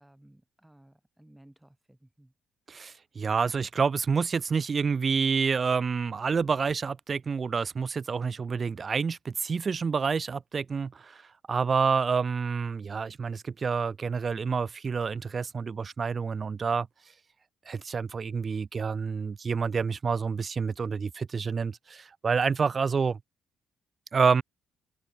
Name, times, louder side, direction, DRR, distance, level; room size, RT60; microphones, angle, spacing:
voice 1, 0.0-2.3, right 1 dB, 5° right, 3.7 m, -57 dB
voice 2, 2.7-11.2 11.5-16.9 17.7-23.2 24.1-24.4, right 5 dB, 40° right, 0.6 m, -28 dB
cardioid pair, 90°, 0 cm